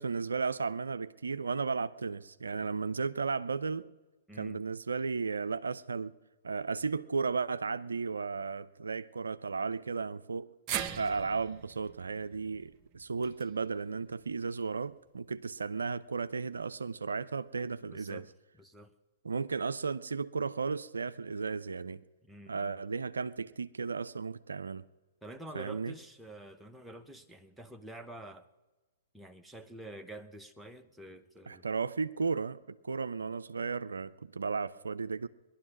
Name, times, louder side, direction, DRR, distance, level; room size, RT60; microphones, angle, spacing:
voice 1, 0.0-3.9 4.4-6.1 6.4-10.5 11.0-18.2 19.2-22.0 22.5-24.8 25.5-25.9 31.5-35.3, right 4 dB, 75° right, 0.4 m, -34 dB
voice 2, 4.3-4.6 10.9-11.2 17.9-18.3 18.5-18.9 22.2-22.8 25.2-28.5 29.1-31.6, right 1 dB, 5° right, 0.8 m, -48 dB
sound 1, 10.7-14.9 15.3-15.4 16.6-16.7, right 9 dB, 35° right, 0.8 m, -42 dB
20.0 x 11.5 x 6.0 m
figure-of-eight pair, 110°, 0 cm